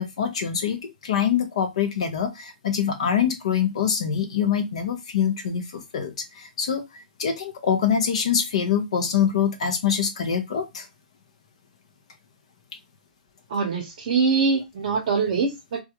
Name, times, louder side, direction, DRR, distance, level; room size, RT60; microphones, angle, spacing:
voice 1, 0.0-6.8 7.2-10.9, left 8 dB, 40° left, 7 dB, 0.6 m, -24 dB
voice 2, 13.5-15.8, right 5 dB, 35° right, 1 dB, 0.8 m, -23 dB
3.4 x 2.3 x 2.8 m, 0.20 s
hypercardioid pair, 180°, 5 cm